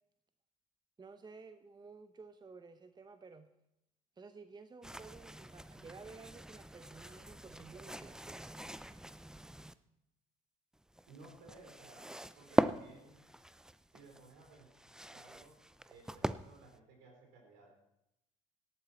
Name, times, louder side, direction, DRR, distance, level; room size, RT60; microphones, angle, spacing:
voice 1, 1.0-3.5 4.2-8.5, right 4 dB, 25° right, 10 dB, 0.9 m, -53 dB
sound 1, 4.8-9.7 10.7-16.8, right 1 dB, 5° right, 0.5 m, -40 dB
voice 2, 11.1-13.2 13.9-14.7 15.1-15.6 15.9-17.7, right 3 dB, 70° right, 1 dB, 4.1 m, -58 dB
17.5 x 11.5 x 4.2 m, 0.86 s
hypercardioid pair, 55°, 19 cm